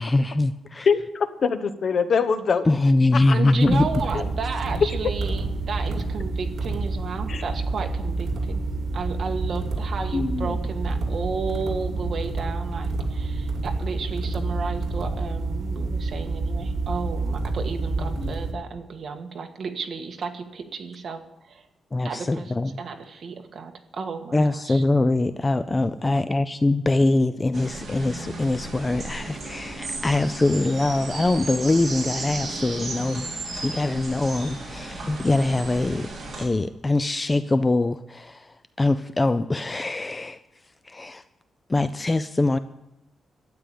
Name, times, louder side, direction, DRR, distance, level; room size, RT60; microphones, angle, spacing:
voice 1, 0.0-0.9 2.7-3.9 21.9-22.7 24.3-33.3 33.6-36.1 36.4-40.4 40.8-41.2 41.7-42.6, left 2 dB, 15° left, 12 dB, 0.4 m, -23 dB
voice 2, 0.9-2.7 3.1-3.5 4.1-4.3 7.3-7.4 10.1-10.6 18.0-18.3, left 5 dB, 45° left, 11 dB, 0.9 m, -24 dB
voice 3, 3.3-8.6 8.9-21.2 21.5-21.6 22.0-24.8, right 5 dB, 45° right, 4 dB, 1.6 m, -33 dB
sound 1, 3.6-18.5, right 3 dB, 65° right, 2.6 m, -28 dB
sound 2, 27.5-36.4, right 2 dB, 30° right, 3.8 m, -34 dB
12.5 x 9.0 x 8.6 m, 0.88 s
wide cardioid pair, 160°, 0 cm